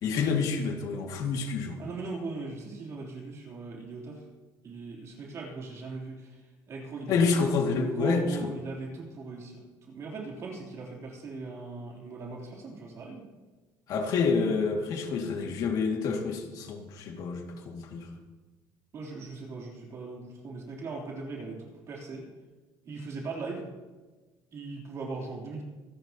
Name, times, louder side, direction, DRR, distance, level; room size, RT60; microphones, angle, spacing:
voice 1, 0.0-1.8 7.1-8.5 13.9-18.1, left 5 dB, 60° left, 2 dB, 2.3 m, -28 dB
voice 2, 1.8-4.2 4.6-6.4 6.7-7.2 7.5-13.3 18.9-22.3 22.9-23.7 24.5-25.6, right 3 dB, 45° right, -2 dB, 3.6 m, -39 dB
25.5 x 11.0 x 3.0 m, 1.2 s
cardioid pair, 140°, 7 cm